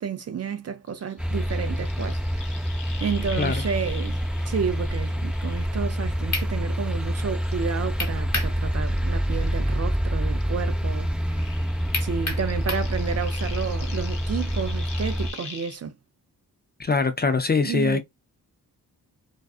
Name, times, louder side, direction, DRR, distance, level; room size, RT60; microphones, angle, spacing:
voice 1, 0.0-2.2 3.0-4.2 4.5-11.1 11.4-11.5 12.0-15.9 17.6-18.0, right 6 dB, 40° right, 0.4 m, -31 dB
sound 1, 0.9-6.4 6.7-10.1 10.4-15.8, left 5 dB, 80° left, 0.7 m, -43 dB
sound 2, 1.2-15.3, equal, 5° right, 0.7 m, -27 dB
sound 3, 6.3-6.5 8.0-8.6 8.9-9.0 11.9-12.9, left 2 dB, 40° left, 1.2 m, -29 dB
voice 2, 16.8-18.0, left 4 dB, 25° left, 0.4 m, -23 dB
2.4 x 2.3 x 2.3 m
cardioid pair, 45°, 40 cm